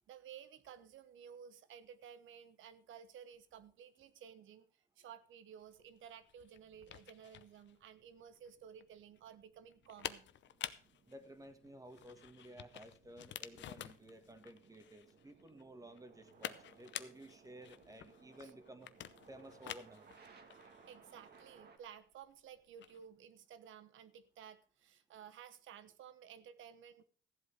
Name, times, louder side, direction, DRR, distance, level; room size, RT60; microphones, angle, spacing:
voice 1, 0.1-10.3 18.4-18.5 20.9-27.0, right 8 dB, 80° right, 13 dB, 1.1 m, -55 dB
sound 1, 5.7-23.1, left 11 dB, 65° left, 0.8 m, -51 dB
sound 2, 5.7-21.8, right 5 dB, 55° right, 2.0 m, -65 dB
voice 2, 11.1-18.9 19.3-20.1, right 1 dB, 15° right, 8 dB, 1.8 m, -54 dB
14.5 x 7.9 x 5.2 m, 0.42 s
cardioid pair, 90°, 20 cm